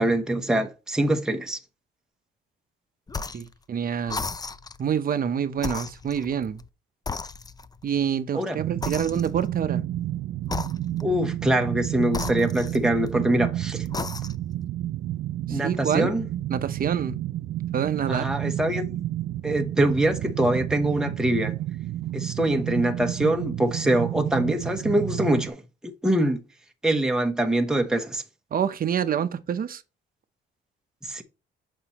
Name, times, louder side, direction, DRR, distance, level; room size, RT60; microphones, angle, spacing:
voice 1, 0.0-1.6 8.3-8.6 11.0-13.8 15.5-16.3 18.1-18.8 19.4-21.5 22.1-25.6 26.0-26.4 26.8-28.2 31.0-31.2, right 1 dB, 5° right, 1.0 m, -24 dB
sound 1, 3.1-3.5 4.1-4.8 5.6-6.7 7.1-7.9 8.8-9.6 10.4-11.2 12.1-13.2 13.8-14.6, left 4 dB, 20° left, 0.5 m, -35 dB
voice 2, 3.3-4.3 4.8-6.6 7.8-9.8 15.5-16.1 16.5-17.2 17.7-18.3 28.5-29.8, right 8 dB, 45° right, 0.8 m, -27 dB
sound 2, 8.6-25.5, right 13 dB, 70° right, 0.4 m, -30 dB
6.9 x 5.4 x 3.0 m
cardioid pair, 90°, 20 cm